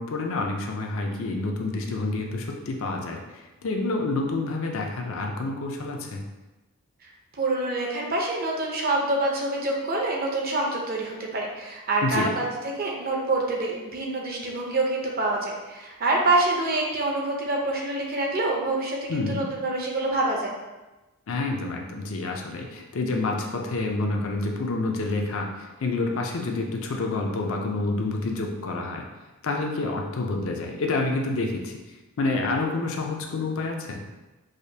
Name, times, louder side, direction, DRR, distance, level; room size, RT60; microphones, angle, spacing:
voice 1, 0.0-6.2 12.0-12.3 19.1-19.4 21.3-29.1 29.4-34.0, left 3 dB, 65° left, 2 dB, 0.5 m, -28 dB
voice 2, 7.3-12.4 12.8-20.5, right 2 dB, 40° right, -1 dB, 0.6 m, -26 dB
4.9 x 2.1 x 2.7 m, 1.1 s
head